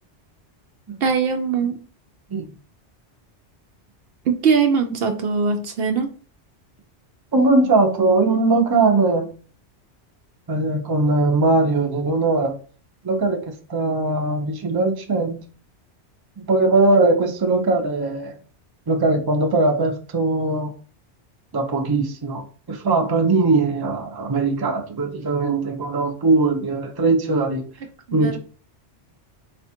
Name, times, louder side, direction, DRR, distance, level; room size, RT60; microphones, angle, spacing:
voice 1, 1.0-1.8 4.3-6.1 27.8-28.4, right 5 dB, 65° right, 6 dB, 0.7 m, -21 dB
voice 2, 7.3-9.3 10.5-12.5 13.0-13.4 13.7-15.4 16.4-18.4 18.9-20.7 21.5-27.6 28.1-28.4, right 3 dB, 25° right, 3 dB, 0.5 m, -20 dB
4.3 x 2.3 x 4.3 m, 0.40 s
omnidirectional pair, 1.2 m